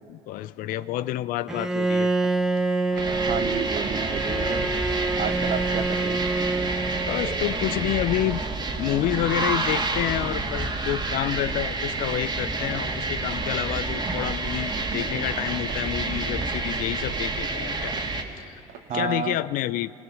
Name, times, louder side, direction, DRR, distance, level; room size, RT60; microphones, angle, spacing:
voice 1, 0.1-2.1 7.0-8.4 8.8-18.0 18.4-18.5 18.9-19.9, left 14 dB, 65° left, 16 dB, 0.6 m, -29 dB
sound 1, 0.7-0.9 1.4-1.6 2.2-2.4 2.9-3.1 3.8-3.9 4.4-4.7 5.2-5.4 6.0-6.2 6.7-6.8 7.5-7.7 8.3-8.4 9.0-9.2 9.7-10.0 10.5-10.7 11.2-11.4 12.0-12.2 12.7-12.9 13.4-13.6 14.2-14.4 14.9-15.1 15.7-15.8 16.4-16.7 17.2-17.3 17.9-18.1 18.7-18.9, right 7 dB, 85° right, 2.2 m, -43 dB
Bowed string instrument, 1.5-7.8, right 2 dB, 5° right, 1.4 m, -27 dB
sound 2, 2.9-18.2, right 3 dB, 30° right, 2.3 m, -29 dB
voice 2, 3.3-4.7 5.2-6.3 18.9-19.4, right 7 dB, 50° right, 12 dB, 1.0 m, -30 dB
26.0 x 17.0 x 6.4 m, 3.0 s
supercardioid pair, 90°, 15 cm